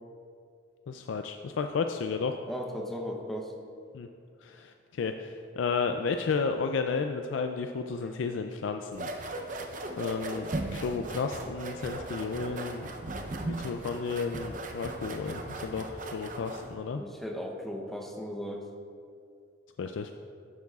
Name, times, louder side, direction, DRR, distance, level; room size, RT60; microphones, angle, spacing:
voice 1, 0.9-2.4 3.9-4.1 4.4-9.1 10.0-10.5 10.8-12.9 13.4-17.0 19.8-20.1, left 5 dB, 85° left, 6 dB, 0.4 m, -32 dB
voice 2, 2.5-3.5 16.9-18.7, equal, ahead, 1 dB, 0.7 m, -36 dB
sound 1, 8.9-16.7, right 2 dB, 45° right, 0.7 m, -37 dB
11.5 x 9.4 x 2.4 m, 2.4 s
head